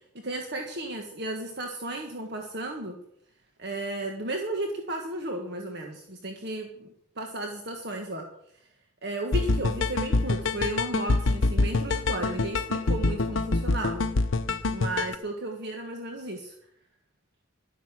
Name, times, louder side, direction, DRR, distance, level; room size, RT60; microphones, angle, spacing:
voice 1, 0.2-3.0 3.6-6.9 7.2-8.2 9.0-14.1 14.7-16.5, right 2 dB, 50° right, 3 dB, 1.6 m, -34 dB
sound 1, 9.3-15.2, left 3 dB, 70° left, 0.8 m, -26 dB
12.0 x 11.0 x 7.5 m, 0.73 s
head